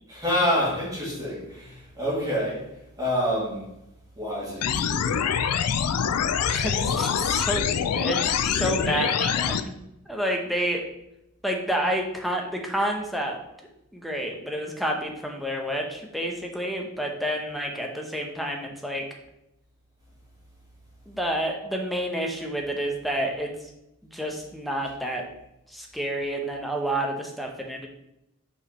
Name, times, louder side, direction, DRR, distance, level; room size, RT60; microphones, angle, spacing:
voice 1, 0.1-2.6 3.0-3.7 4.2-5.2, equal, 15° right, -7 dB, 2.4 m, -27 dB
sound 1, 4.6-9.6, left 7 dB, 90° left, 0.4 m, -25 dB
voice 2, 6.5-8.2 8.4-9.7 10.1-10.8 11.4-13.4 13.9-19.0 21.1-23.5 24.0-25.2 25.7-27.9, right 1 dB, ahead, 1 dB, 0.9 m, -29 dB
5.6 x 4.8 x 4.2 m, 0.85 s
head